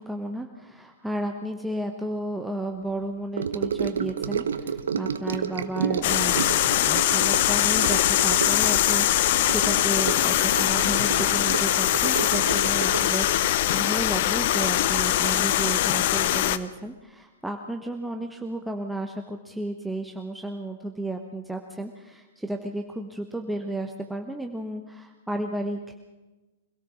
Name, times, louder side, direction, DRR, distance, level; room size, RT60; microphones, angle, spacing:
voice 1, 0.0-6.5 6.8-26.0, right 1 dB, 5° right, 3 dB, 1.1 m, -33 dB
Gurgling / Sink (filling or washing) / Trickle dribble, 3.4-15.0 15.3-15.6 15.9-16.0, right 7 dB, 65° right, 1.0 m, -31 dB
sound 1, 6.0-16.6, left 13 dB, 45° left, 0.8 m, -22 dB
24.5 x 17.5 x 6.3 m, 1.2 s
figure-of-eight pair, 105°, 0 cm